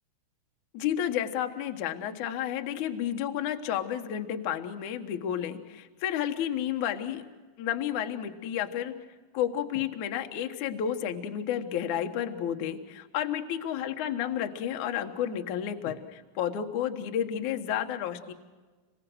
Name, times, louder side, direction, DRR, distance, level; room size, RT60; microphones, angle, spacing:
voice 1, 0.7-7.2 7.6-9.0 9.3-18.3, left 10 dB, 90° left, 5 dB, 1.7 m, -31 dB
27.5 x 23.0 x 6.4 m, 1.3 s
omnidirectional pair, 5.8 m